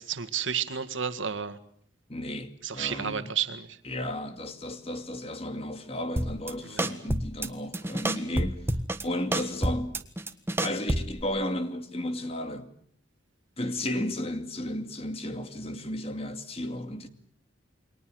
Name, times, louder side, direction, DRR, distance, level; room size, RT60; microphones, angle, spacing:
voice 1, 0.0-1.6 2.6-3.8 6.6-6.9, right 7 dB, 80° right, 2.0 m, -32 dB
voice 2, 2.1-3.3 3.8-8.8 9.0-10.0 10.6-12.7 13.6-17.1, left 1 dB, 30° left, 2.3 m, -34 dB
sound 1, 6.2-6.5 6.8-7.5 7.7-9.0 9.3-11.2, right 1 dB, 10° right, 1.5 m, -28 dB
29.0 x 23.5 x 7.8 m
head